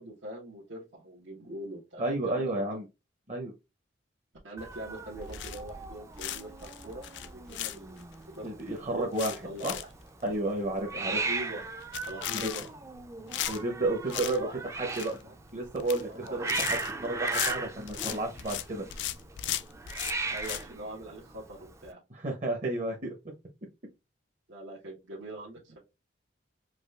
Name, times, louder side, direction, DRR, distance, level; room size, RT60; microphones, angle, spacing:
voice 1, 0.0-2.7 4.4-9.1 9.4-9.9 11.1-11.6 12.0-12.6 14.1-14.5 14.8-15.3 16.1-16.4 20.3-22.0 24.5-25.8, right 1 dB, 90° right, -6 dB, 1.1 m, -43 dB
voice 2, 2.0-2.8 3.3-3.5 8.4-9.3 9.6-9.7 10.2-11.2 12.3-12.5 13.5-15.1 15.5-18.8 22.1-23.1, right 2 dB, 40° right, 0 dB, 0.7 m, -32 dB
Hiss, 4.6-21.9, right 3 dB, 15° right, 0.3 m, -38 dB
sound 1, 5.3-5.8 6.2-8.1 8.6-8.7 8.9-9.9 10.2-10.3 10.7-10.8 11.0-11.4 11.8-13.0 13.3-14.4 14.7-15.2 15.6-16.0 16.3-18.6 18.9-20.6, left 12 dB, 70° left, 0.3 m, -36 dB
4.9 x 2.3 x 2.3 m, 0.25 s
head